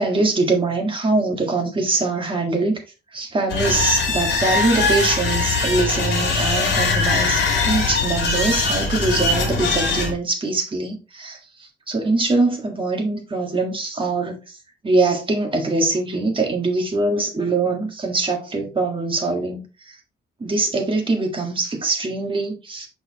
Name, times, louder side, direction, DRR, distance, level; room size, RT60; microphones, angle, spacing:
voice 1, 0.0-2.8 3.1-14.6 14.8-20.0 20.4-22.9, right 3 dB, 25° right, 1.7 m, -23 dB
sound 1, 3.5-10.1, left 3 dB, 65° left, 2.2 m, -21 dB
6.6 x 5.4 x 2.9 m
cardioid pair, 130°, 20 cm